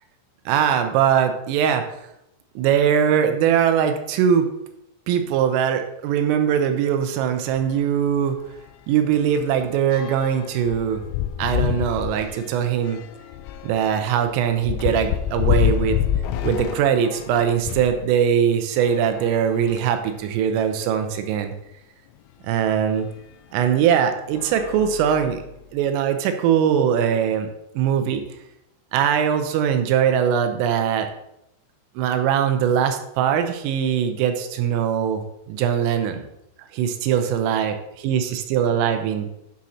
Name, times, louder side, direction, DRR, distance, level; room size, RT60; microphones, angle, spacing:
voice 1, 0.5-1.8 2.6-4.5 5.1-8.4 8.9-11.0 11.4-13.0 13.6-16.0 16.4-21.5 22.4-23.1 23.5-25.4 25.7-27.5 27.7-28.2 28.9-31.1 32.0-35.2 35.5-36.2 36.7-37.8 38.0-39.3, right 8 dB, 80° right, 7 dB, 3.2 m, -21 dB
sound 1, 7.5-7.7 8.1-8.2 8.5-18.0 18.7-20.1 20.8-20.9 21.1-21.2 22.9-23.0 23.6-23.9 24.3-25.6, left 11 dB, 85° left, 2.7 m, -28 dB
11.5 x 6.2 x 2.8 m, 0.82 s
omnidirectional pair, 6.0 m